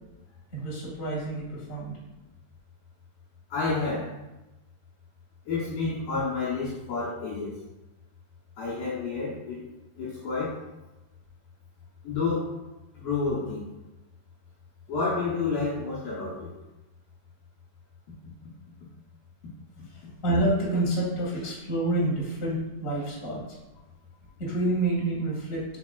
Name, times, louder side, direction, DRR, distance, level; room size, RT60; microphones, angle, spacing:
voice 1, 0.5-1.9 20.2-23.4 24.4-25.6, right 1 dB, 25° left, -5 dB, 1.5 m, -28 dB
voice 2, 3.5-4.2 5.5-7.6 8.6-9.6 10.0-10.6 12.0-12.6 13.0-13.7 14.9-16.5, left 4 dB, 70° left, -6 dB, 2.6 m, -29 dB
8.9 x 4.7 x 2.4 m, 1.0 s
omnidirectional pair, 4.5 m